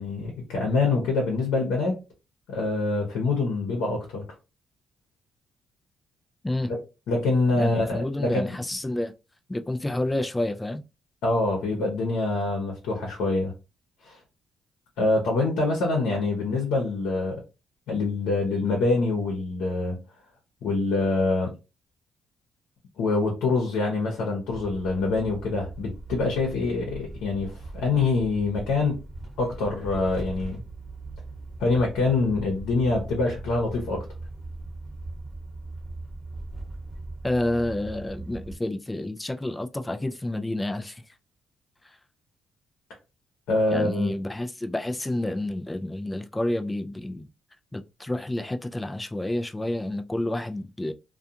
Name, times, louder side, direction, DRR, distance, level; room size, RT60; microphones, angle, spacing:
voice 1, 0.0-2.0 2.5-4.2 6.7-6.8 7.1-8.5 11.2-13.5 14.0-14.2 15.0-17.4 17.9-20.0 20.6-21.5 23.0-29.0 29.4-30.6 31.6-34.0 43.5-44.1, left 3 dB, 90° left, 0.8 m, -25 dB
voice 2, 7.5-9.1 9.5-10.8 37.2-41.0 41.8-42.0 43.7-47.3 47.7-50.9, left 1 dB, 15° left, 0.3 m, -29 dB
sound 1, 24.5-38.5, right 2 dB, 20° right, 1.1 m, -39 dB
2.4 x 2.3 x 2.7 m
cardioid pair, 90°, 0 cm